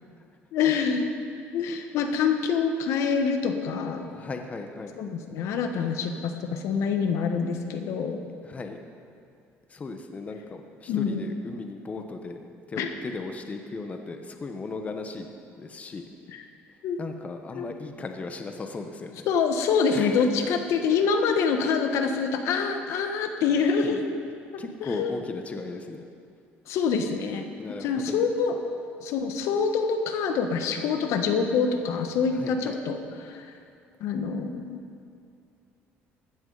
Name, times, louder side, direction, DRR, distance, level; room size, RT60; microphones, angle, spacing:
voice 1, 0.5-1.1 1.5-4.2 5.0-8.2 10.9-11.3 12.8-12.9 16.3-16.4 16.8-17.0 17.6-17.7 19.3-24.2 24.5-25.1 26.7-27.4 27.8-28.6 29.0-33.5 34.0-34.8, left 5 dB, 70° left, 5 dB, 1.2 m, -26 dB
voice 2, 4.1-4.9 8.4-8.8 9.7-12.4 12.7-15.3 15.6-16.0 17.0-19.3 19.9-20.5 23.8-24.0 24.6-26.0 27.6-28.2 32.3-32.8, left 3 dB, 30° left, 5 dB, 1.1 m, -37 dB
16.0 x 13.0 x 4.0 m, 2.5 s
cardioid pair, 105°, 5 cm